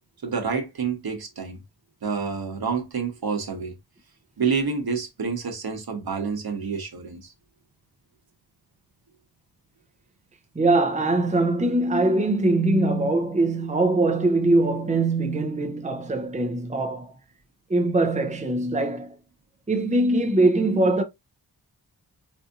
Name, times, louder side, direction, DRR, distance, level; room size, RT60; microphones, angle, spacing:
voice 1, 0.2-1.6 2.0-3.7 4.4-7.3, right 5 dB, 65° right, 1.2 m, -28 dB
voice 2, 10.5-17.1 17.7-19.2 19.7-21.0, right 2 dB, 20° right, 0.7 m, -22 dB
4.2 x 2.7 x 2.5 m
cardioid pair, 55°, 39 cm